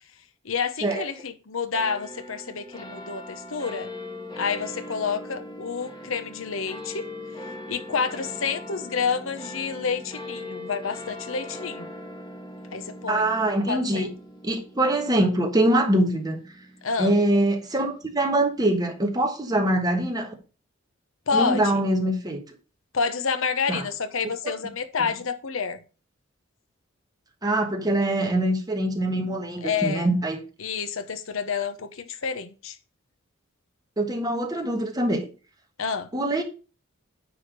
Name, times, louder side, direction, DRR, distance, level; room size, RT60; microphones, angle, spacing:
voice 1, 0.4-3.9 4.4-7.1 7.7-11.9 12.7-13.2 13.7-14.1 16.8-17.1 21.3-21.8 22.9-25.8 29.6-30.1 30.6-32.8 35.8-36.1, left 5 dB, 70° left, 0.8 m, -29 dB
sound 1, 1.7-18.4, left 1 dB, 20° left, 1.5 m, -40 dB
voice 2, 13.1-14.1 14.4-16.4 17.0-20.3 21.3-22.4 23.7-23.8 24.4-24.5 27.4-30.4 34.0-35.3 36.1-36.4, right 1 dB, 20° right, 1.4 m, -23 dB
9.6 x 3.5 x 6.5 m
head